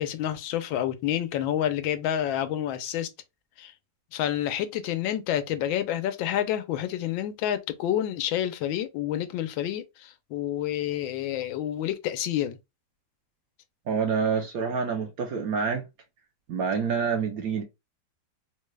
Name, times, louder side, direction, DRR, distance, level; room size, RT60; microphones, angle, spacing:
voice 1, 0.0-3.1 3.6-3.7 4.1-12.6, left 11 dB, 85° left, 1.3 m, -29 dB
voice 2, 13.9-15.8 16.5-17.6, right 6 dB, 70° right, 0.9 m, -27 dB
3.8 x 2.2 x 3.2 m
omnidirectional pair, 2.1 m